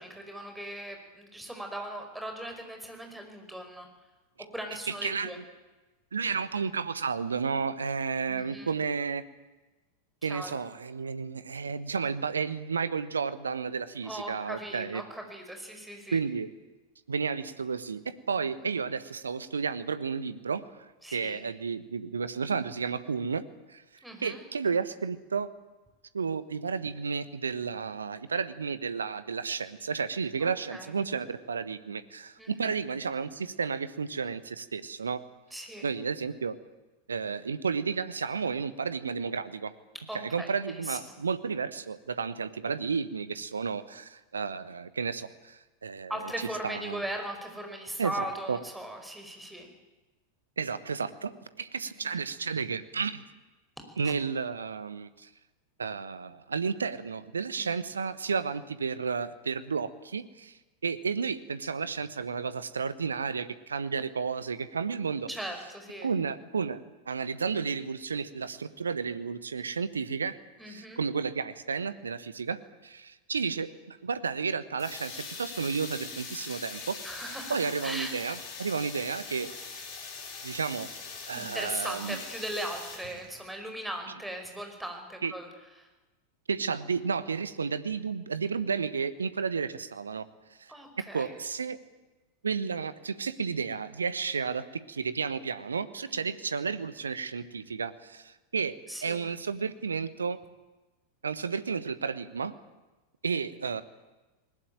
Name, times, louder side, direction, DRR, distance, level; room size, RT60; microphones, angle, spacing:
voice 1, 0.0-3.9 4.5-5.4 8.3-8.7 10.2-10.6 14.0-16.2 18.6-18.7 21.0-21.5 24.0-24.4 30.4-30.9 32.4-32.7 35.5-35.9 40.1-41.0 46.1-49.7 51.8-52.1 54.0-54.1 57.6-57.7 65.3-66.1 70.6-71.0 77.0-78.2 81.3-85.5 85.8-85.9 90.7-91.3 96.1-96.4 98.9-99.3, right 1 dB, 5° right, 4 dB, 5.1 m, -39 dB
voice 2, 4.9-5.3 6.1-9.2 10.2-15.0 16.1-16.5 17.1-20.6 21.1-23.4 23.7-23.8 24.2-25.5 26.1-35.2 35.8-36.6 37.1-39.7 40.1-46.1 46.6-47.0 48.0-48.6 50.6-53.2 54.0-55.3 55.8-65.3 66.0-70.4 70.7-72.6 72.8-77.0 77.5-79.5 80.4-80.9 81.3-82.2 85.2-85.3 86.5-90.2 90.6-90.7 91.1-91.8 92.4-100.4 101.2-102.5 103.2-103.8, right 5 dB, 70° right, 14 dB, 1.3 m, -32 dB
sound 1, 74.8-83.5, left 4 dB, 45° left, 6.4 m, -42 dB
20.0 x 20.0 x 9.1 m, 1.1 s
figure-of-eight pair, 90°, 0 cm